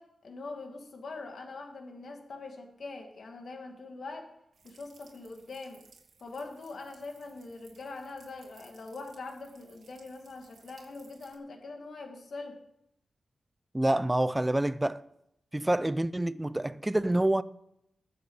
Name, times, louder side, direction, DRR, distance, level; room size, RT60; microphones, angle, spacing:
voice 1, 0.0-4.3 4.6-5.8 6.2-12.6 15.8-15.9, left 3 dB, 60° left, 2.1 m, -43 dB
sound 1, 4.5-11.3, right 5 dB, 75° right, 2.7 m, -61 dB
voice 2, 13.7-15.0 15.5-17.4, right 1 dB, 10° right, 0.5 m, -27 dB
20.0 x 8.0 x 5.5 m
wide cardioid pair, 145°, 0 cm